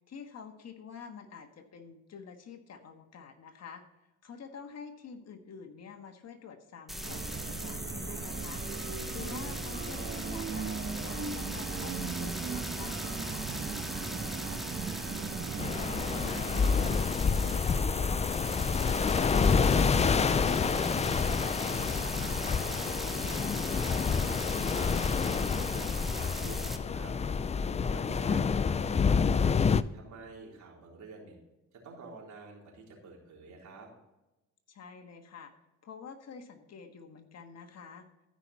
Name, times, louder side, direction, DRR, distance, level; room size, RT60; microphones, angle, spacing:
voice 1, 0.1-3.8 4.2-8.6 9.1-13.4 23.3-23.5 34.7-35.5 35.8-38.0, left 6 dB, 60° left, 6 dB, 1.6 m, -48 dB
sound 1, 6.9-26.8, equal, ahead, 1.1 m, -39 dB
sound 2, 7.0-16.9, right 5 dB, 40° right, 1.2 m, -38 dB
voice 2, 13.8-14.6 15.2-22.4 22.7-25.0 25.4-27.1 27.9-29.6 29.9-31.4 31.7-33.9, right 4 dB, 70° right, -2 dB, 3.8 m, -49 dB
sound 3, 15.6-29.8, left 5 dB, 25° left, 0.4 m, -28 dB
14.5 x 5.7 x 4.1 m, 0.98 s
cardioid pair, 90°, 30 cm